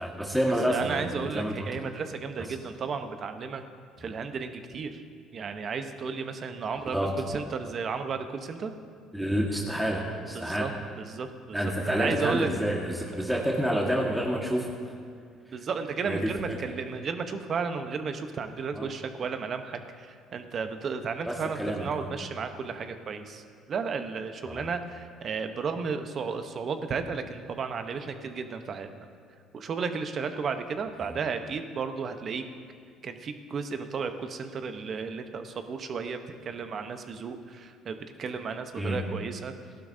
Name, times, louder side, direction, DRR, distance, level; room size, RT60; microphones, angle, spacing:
voice 1, 0.0-1.7 2.4-2.6 6.9-7.1 9.1-10.7 11.5-14.7 15.5-15.6 16.1-16.7 18.7-18.9 21.3-22.1 24.5-24.7 31.1-31.2 38.8-39.0, equal, 5° right, -2 dB, 1.7 m, -29 dB
voice 2, 0.7-3.6 4.0-5.0 5.3-7.0 7.3-8.7 10.3-10.7 11.0-11.6 11.8-12.5 15.5-23.4 23.7-29.1 29.5-32.4 33.0-39.5, right 5 dB, 50° right, 8 dB, 1.0 m, -33 dB
17.0 x 11.5 x 2.8 m, 2.3 s
supercardioid pair, 75°, 0 cm